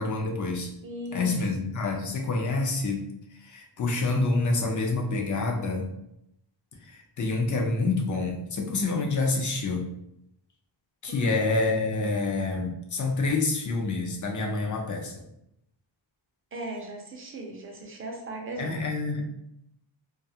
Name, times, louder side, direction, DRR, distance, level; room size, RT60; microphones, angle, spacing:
voice 1, 0.0-0.7 1.1-3.0 3.4-5.9 6.8-9.9 11.0-15.1 18.6-19.3, left 3 dB, 45° left, 1 dB, 0.5 m, -27 dB
voice 2, 0.8-1.3 11.1-11.4 16.5-18.8, right 1 dB, 30° right, 1 dB, 0.5 m, -37 dB
2.3 x 2.3 x 2.7 m, 0.80 s
wide cardioid pair, 165°, 45 cm